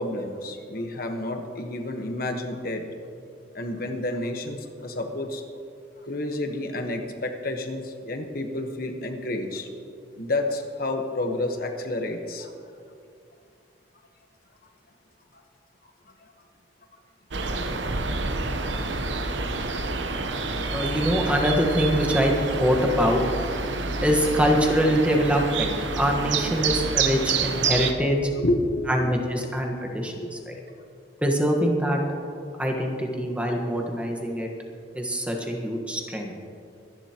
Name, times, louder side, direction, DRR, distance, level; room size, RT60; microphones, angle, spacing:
voice 1, 0.0-2.8 3.5-5.4 6.0-9.7 10.2-12.5 15.3-15.4 16.2-16.3 17.9-18.0 28.4-29.1 30.2-30.6, left 1 dB, 55° left, 4 dB, 1.2 m, -30 dB
sound 1, 17.3-27.9, right 4 dB, 85° right, 1.0 m, -28 dB
voice 2, 20.7-22.3 22.6-23.2 24.0-28.2 28.9-30.1 30.5-30.6 31.2-32.0 32.6-34.5 34.9-36.3, equal, 5° right, 1 dB, 1.4 m, -24 dB
25.0 x 11.0 x 3.0 m, 2.4 s
head